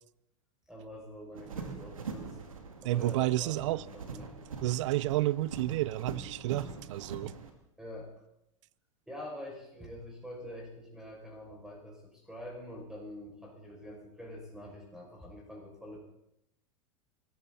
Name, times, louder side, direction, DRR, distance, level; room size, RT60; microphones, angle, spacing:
voice 1, 0.7-2.4 2.8-4.3 7.8-8.1 9.1-16.0, left 1 dB, 5° right, 6.4 m, -46 dB
sound 1, 1.3-7.5, right 5 dB, 90° right, 2.6 m, -43 dB
voice 2, 2.8-3.9 4.6-7.3, right 16 dB, 65° right, 0.6 m, -30 dB
24.0 x 13.5 x 4.2 m
hypercardioid pair, 100°, 17 cm